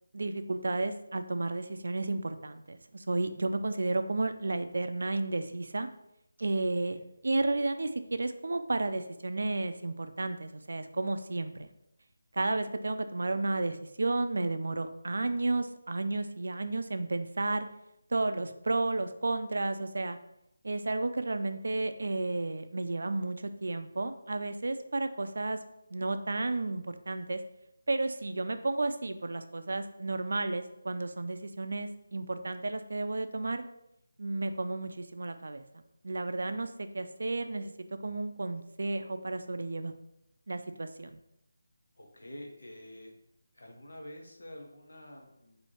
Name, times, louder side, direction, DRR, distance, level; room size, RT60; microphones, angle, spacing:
voice 1, 0.1-5.9 6.4-11.7 12.3-17.7 18.1-20.2 20.6-25.6 25.9-27.4 27.9-33.6 34.2-35.6 36.0-37.7 38.0-39.9 40.5-41.2, right 2 dB, 65° right, 9 dB, 0.4 m, -32 dB
voice 2, 41.9-43.1 43.5-45.6, left 1 dB, 70° left, 1 dB, 1.1 m, -48 dB
4.3 x 2.7 x 4.3 m, 0.82 s
figure-of-eight pair, 160°, 0 cm